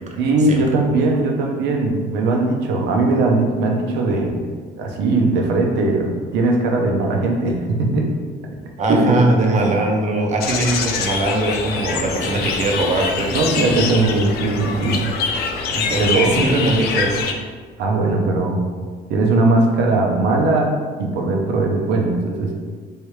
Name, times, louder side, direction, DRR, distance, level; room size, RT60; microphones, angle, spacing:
voice 1, 0.2-4.5 4.8-8.1 8.9-9.2 9.5-9.7 13.3-15.1 16.0-16.4 17.8-18.6 19.1-20.7 21.0-22.5, right 2 dB, 85° right, 1 dB, 0.6 m, -19 dB
voice 2, 8.8-13.3 15.7-17.3, right 2 dB, 45° right, 1 dB, 0.6 m, -20 dB
sound 1, 10.4-17.3, left 5 dB, 70° left, 0.4 m, -24 dB
3.3 x 2.7 x 3.1 m, 1.5 s
cardioid pair, 110°, 17 cm